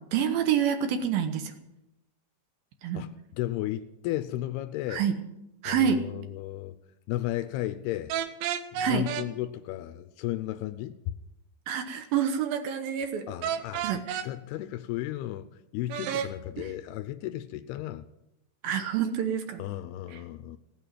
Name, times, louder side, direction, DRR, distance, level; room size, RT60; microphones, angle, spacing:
voice 1, 0.0-1.5 2.8-3.0 4.9-5.2 5.6-6.0 8.8-9.0 11.7-13.3 13.8-14.2 16.1-16.3 16.6-16.7 18.6-19.6 20.1-20.2, right 8 dB, 70° right, 2.4 m, -27 dB
voice 2, 2.9-5.0 5.7-6.8 7.1-8.1 8.7-11.0 13.3-13.9 14.2-15.5 15.7-18.1 19.6-20.6, left 14 dB, 80° left, 2.4 m, -34 dB
sound 1, 8.1-9.3 13.4-14.3 15.9-16.3, right 9 dB, 90° right, 3.3 m, -31 dB
17.0 x 8.7 x 9.2 m
omnidirectional pair, 5.2 m